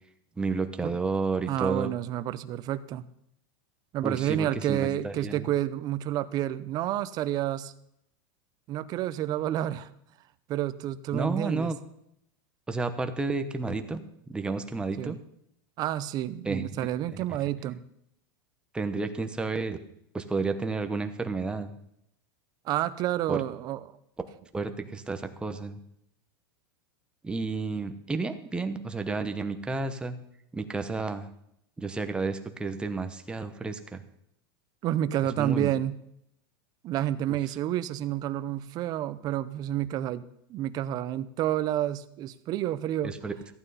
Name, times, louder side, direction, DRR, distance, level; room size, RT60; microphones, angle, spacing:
voice 1, 0.4-1.9 4.0-5.5 11.1-11.8 12.7-14.0 14.3-15.2 16.4-16.9 18.7-19.8 20.1-21.7 23.3-23.4 24.5-25.8 27.2-30.1 30.5-31.3 31.8-34.0 35.4-35.7 37.3-37.4 43.0-43.3, right 3 dB, 10° right, 8 dB, 0.9 m, -31 dB
voice 2, 1.5-3.1 3.9-7.7 8.7-9.9 10.5-11.7 15.0-15.2 15.8-17.8 22.6-23.8 34.8-36.0 36.8-43.1, right 12 dB, 35° right, 14 dB, 0.7 m, -29 dB
14.5 x 8.9 x 5.6 m, 0.74 s
supercardioid pair, 155°, 12 cm